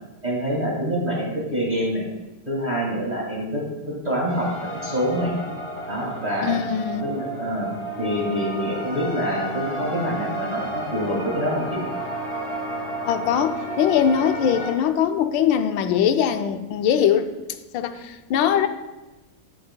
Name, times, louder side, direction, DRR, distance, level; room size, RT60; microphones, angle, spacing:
voice 1, 0.2-2.0 2.5-5.3 5.9-6.6 7.0-7.7 8.0-11.8, equal, 25° right, -4 dB, 1.8 m, -26 dB
sound 1, 4.3-14.7, right 1 dB, 80° right, 3.3 m, -32 dB
voice 2, 6.4-7.0 13.0-17.3 17.7-18.7, left 9 dB, 80° left, 8 dB, 1.3 m, -21 dB
14.5 x 6.7 x 2.2 m, 1.1 s
omnidirectional pair, 2.1 m